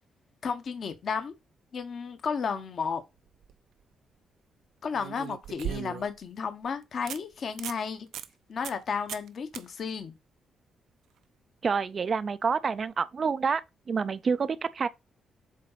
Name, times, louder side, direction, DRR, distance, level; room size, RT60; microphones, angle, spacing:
voice 1, 0.4-1.3 1.7-3.0 4.8-8.1 8.5-10.1, left 6 dB, 45° left, 0.9 m, -33 dB
sound 1, 3.2-3.5 4.9-6.2 6.6-6.7 7.1-7.2 7.5-7.8 8.1-8.3 8.6-8.8 9.1-9.3 9.5-9.6 12.7-12.8, right 9 dB, 85° right, 0.6 m, -38 dB
voice 2, 11.6-13.6 13.9-14.9, right 5 dB, 35° right, 0.3 m, -28 dB
7.5 x 4.0 x 3.9 m
wide cardioid pair, 165°, 0 cm